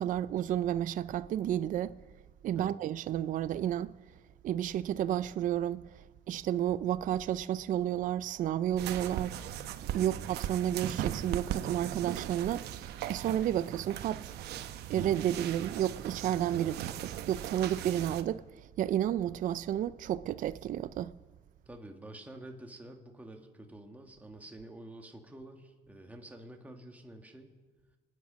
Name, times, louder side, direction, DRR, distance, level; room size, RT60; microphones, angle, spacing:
voice 1, 0.0-1.9 2.4-3.9 4.4-5.8 6.3-9.4 9.9-14.3 14.9-16.7 17.3-21.1, right 11 dB, 50° right, 0.4 m, -31 dB
sound 1, 8.8-18.2, right 11 dB, 75° right, 0.9 m, -38 dB
voice 2, 21.7-27.5, right 1 dB, 10° right, 1.8 m, -49 dB
25.5 x 9.7 x 5.2 m
cardioid pair, 110°, 17 cm